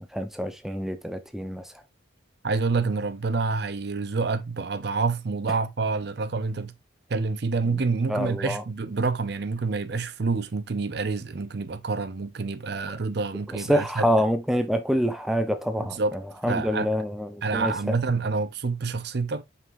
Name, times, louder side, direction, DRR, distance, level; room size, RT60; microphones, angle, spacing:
voice 1, 0.0-1.6 7.7-7.8 8.1-8.6 13.7-16.0 16.4-17.7, equal, ahead, 0.8 m, -26 dB
voice 2, 2.4-6.7 7.1-14.1 15.8-16.2 16.5-16.9 17.4-19.4, right 4 dB, 55° right, 0.6 m, -27 dB
8.0 x 5.6 x 2.6 m
head